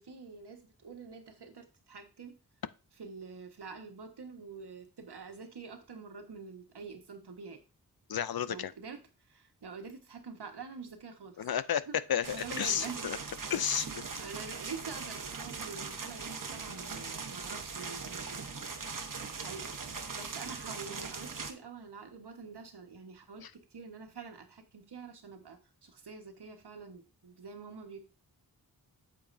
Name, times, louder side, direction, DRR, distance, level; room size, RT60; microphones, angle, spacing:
voice 1, 0.0-2.4 3.0-7.6 8.5-9.0 9.3-11.4 11.9-12.0 12.3-13.1 14.2-18.6 19.4-28.0, right 5 dB, 80° right, 1.5 m, -46 dB
voice 2, 8.1-8.7 11.4-13.2 13.5-14.0 23.4-23.5, left 9 dB, 65° left, 0.6 m, -32 dB
sound 1, 12.2-21.5, right 5 dB, 55° right, 1.1 m, -40 dB
8.6 x 7.6 x 2.7 m
wide cardioid pair, 75°, 39 cm